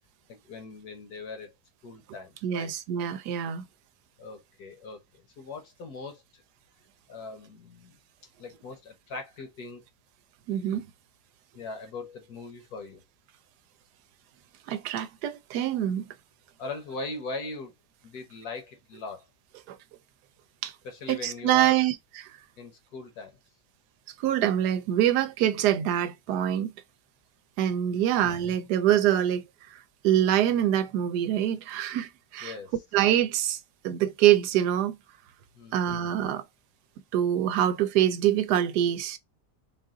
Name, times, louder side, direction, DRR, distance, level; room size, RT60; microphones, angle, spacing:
voice 1, 0.3-1.5 1.8-2.7 4.2-6.4 7.1-8.0 8.4-9.8 11.5-13.0 16.6-17.7 18.0-19.2 20.8-21.8 22.6-23.4 27.9-28.2 32.4-32.7 35.5-35.9, left 3 dB, 65° left, 1.5 m, -40 dB
voice 2, 2.4-3.7 10.5-10.9 14.7-16.1 19.7-19.8 20.6-20.7 21.1-22.3 24.2-26.7 27.6-29.4 30.0-32.5 32.9-33.6 33.8-35.0 35.7-36.4 37.1-39.2, right 11 dB, 80° right, 1.1 m, -25 dB
3.9 x 2.5 x 3.6 m
omnidirectional pair, 1.8 m